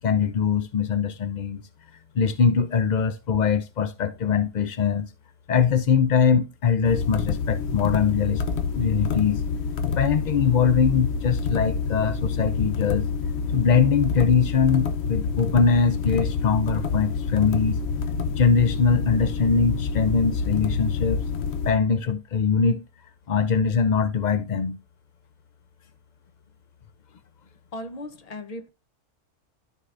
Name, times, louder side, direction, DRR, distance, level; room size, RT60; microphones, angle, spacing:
voice 1, 0.0-1.6 2.1-5.1 5.5-8.4 8.7-9.4 10.0-13.1 13.5-17.8 18.4-21.2 21.7-22.8 23.3-24.8, left 6 dB, 75° left, 0.4 m, -22 dB
sound 1, 6.8-21.7, left 5 dB, 55° left, 1.0 m, -27 dB
voice 2, 27.7-28.7, left 1 dB, 35° left, 0.6 m, -36 dB
13.0 x 4.7 x 2.5 m
omnidirectional pair, 1.5 m